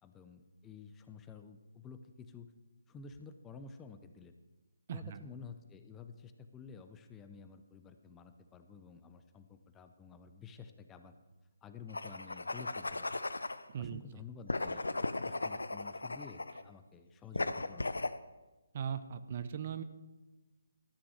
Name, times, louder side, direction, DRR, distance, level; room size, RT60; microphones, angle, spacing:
voice 1, 0.0-2.5 2.9-4.3 4.9-11.1 11.6-13.1 13.8-18.1, left 5 dB, 15° left, 8 dB, 0.6 m, -51 dB
voice 2, 4.9-5.2 13.7-14.0 18.7-19.8, right 8 dB, 40° right, 12 dB, 0.6 m, -38 dB
sound 1, 11.9-13.6 14.5-16.6 17.3-18.2, left 2 dB, 80° left, 0.5 m, -37 dB
13.0 x 6.1 x 6.4 m, 1.1 s
figure-of-eight pair, 145°, 0 cm